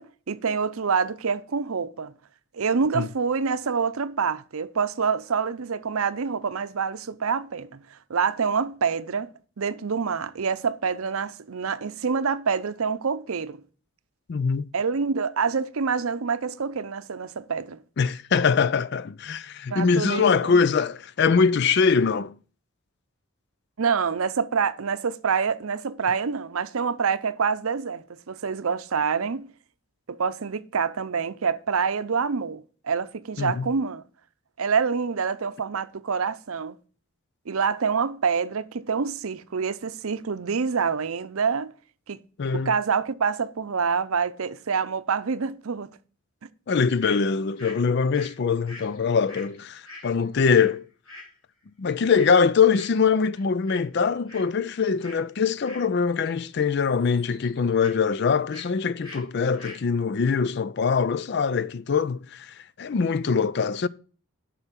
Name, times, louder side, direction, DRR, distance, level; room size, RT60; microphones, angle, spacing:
voice 1, 0.0-2.1 2.5-9.3 9.6-13.6 14.7-17.8 19.7-20.6 23.8-29.5 30.1-34.0 34.6-36.8 37.5-41.7 42.1-42.2 42.6-45.9, right 5 dB, 75° right, 0.6 m, -26 dB
voice 2, 14.3-14.6 18.0-22.3 33.4-33.7 42.4-42.7 46.7-50.8 51.8-63.9, left 5 dB, 50° left, 0.4 m, -23 dB
sound 1, 47.0-47.2 47.6-50.7 51.0-51.3 52.1-52.4 52.7-53.1 53.3-53.8 54.1-54.5 55.0-55.2 55.6-56.4 56.7-57.9 58.5-58.7 59.0-59.2 59.5-59.8, left 2 dB, 75° left, 4.1 m, -44 dB
8.0 x 5.8 x 7.4 m
head